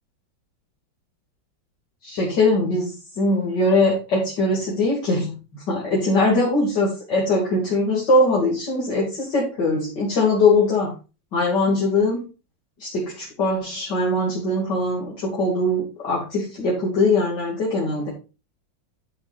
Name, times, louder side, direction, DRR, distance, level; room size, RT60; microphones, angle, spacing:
voice 1, 2.0-10.9 11.3-12.2 12.8-18.1, left 2 dB, 60° left, -3 dB, 3.3 m, -21 dB
12.0 x 7.4 x 2.6 m, 0.30 s
omnidirectional pair, 2.1 m